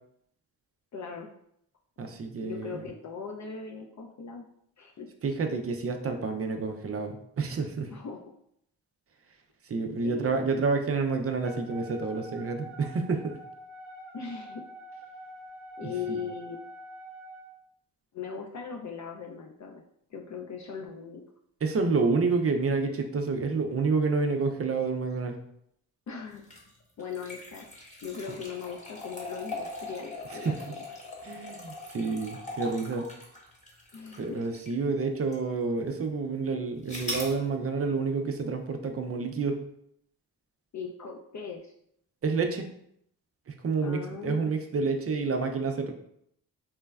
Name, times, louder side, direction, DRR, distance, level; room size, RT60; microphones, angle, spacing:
voice 1, 0.9-1.3 2.4-4.4 4.8-5.1 7.9-8.3 10.0-10.5 14.1-14.6 15.8-16.6 18.1-19.8 20.1-21.2 26.1-26.6 27.0-27.7 28.0-30.9 33.9-34.4 40.7-41.7 43.8-44.5, left 6 dB, 45° left, 0 dB, 0.4 m, -39 dB
voice 2, 2.0-2.8 5.2-7.9 9.7-13.4 15.8-16.2 21.6-25.4 30.4-30.6 31.2-33.1 34.2-39.6 42.2-42.7 43.5-45.9, right 4 dB, 35° right, 5 dB, 0.4 m, -29 dB
Wind instrument woodwind instrument, 11.4-17.5, right 1 dB, 85° right, 0.7 m, -45 dB
sound 1, 26.4-34.8 35.3-35.4 36.9-37.4, left 1 dB, 15° left, 1.0 m, -40 dB
3.1 x 2.0 x 2.3 m, 0.71 s
supercardioid pair, 40°, 43 cm